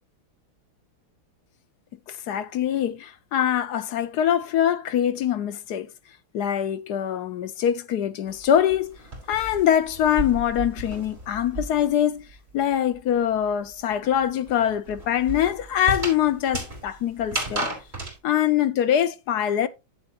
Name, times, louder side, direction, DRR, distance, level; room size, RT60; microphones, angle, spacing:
voice 1, 2.1-5.9 6.3-9.0 9.3-12.2 12.5-17.7 18.2-19.7, left 10 dB, 65° left, 1.1 m, -23 dB
sound 1, 8.3-12.0 12.3-18.2, right 2 dB, 30° right, 4.4 m, -34 dB
10.5 x 7.8 x 2.9 m
omnidirectional pair, 2.2 m